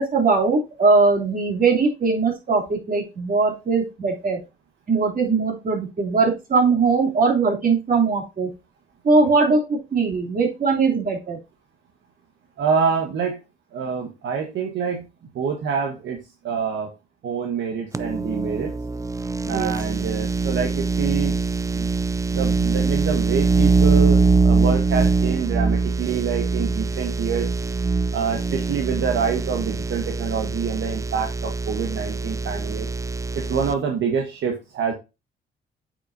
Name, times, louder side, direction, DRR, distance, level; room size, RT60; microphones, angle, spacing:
voice 1, 0.0-4.4 4.9-8.5 9.0-11.4 19.5-19.7, right 4 dB, 45° right, 0 dB, 3.1 m, -20 dB
voice 2, 12.6-13.4 13.7-15.0 15.3-16.2 16.4-16.9 17.2-18.7 19.5-21.3 21.7-21.9 22.3-27.5 28.1-32.9 33.3-34.9, right 6 dB, 70° right, 2 dB, 1.4 m, -26 dB
sound 1, 17.9-33.7, right 4 dB, 15° right, 0.4 m, -23 dB
8.2 x 6.3 x 2.7 m, 0.26 s
cardioid pair, 90°, 20 cm